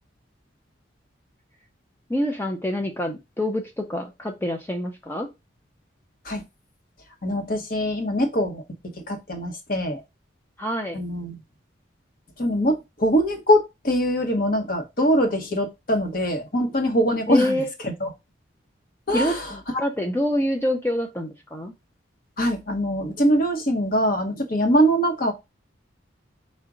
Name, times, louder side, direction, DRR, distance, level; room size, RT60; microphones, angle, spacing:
voice 1, 2.1-5.3 10.6-11.0 17.3-17.7 19.1-21.7, left 1 dB, 10° left, 0.4 m, -26 dB
voice 2, 7.2-8.6 9.1-10.0 10.9-11.4 12.4-17.6 17.8-18.1 19.1-19.5 19.7-19.8 22.4-25.3, equal, 50° left, 0.8 m, -23 dB
4.7 x 2.1 x 3.7 m
head